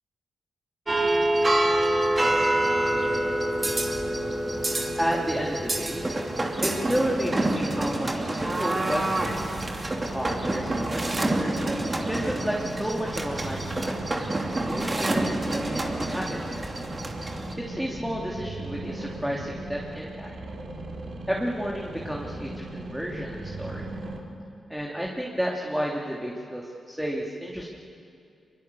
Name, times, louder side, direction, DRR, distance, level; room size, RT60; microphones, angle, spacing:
sound 1, 0.9-17.5, right 1 dB, 30° right, 2.8 m, -27 dB
voice 1, 5.0-6.1 6.6-9.5 10.1-11.6 12.1-14.0 14.6-16.4 17.5-20.3 21.3-23.9 24.7-27.7, equal, 5° right, -2 dB, 3.0 m, -31 dB
sound 2, 9.0-24.2, right 2 dB, 70° right, 3.1 m, -38 dB
24.0 x 23.0 x 7.0 m, 2.6 s
cardioid pair, 60°, 0 cm